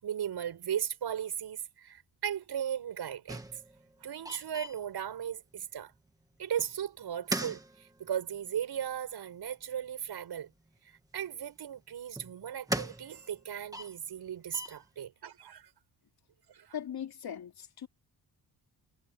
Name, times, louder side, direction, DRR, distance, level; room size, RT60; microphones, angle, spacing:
voice 1, 0.0-3.4 4.0-5.9 6.4-10.5 10.8-15.7 16.5-16.8, right 9 dB, 70° right, 7.0 m, -37 dB
sound 1, 3.3-3.9 4.2-5.5 6.6-6.7 7.0-8.4 9.3-9.4 10.5-10.6 11.8-13.4 13.7-14.8, right 1 dB, 10° right, 1.8 m, -38 dB
voice 2, 16.7-17.9, left 9 dB, 60° left, 3.2 m, -39 dB
wide cardioid pair, 145°, 41 cm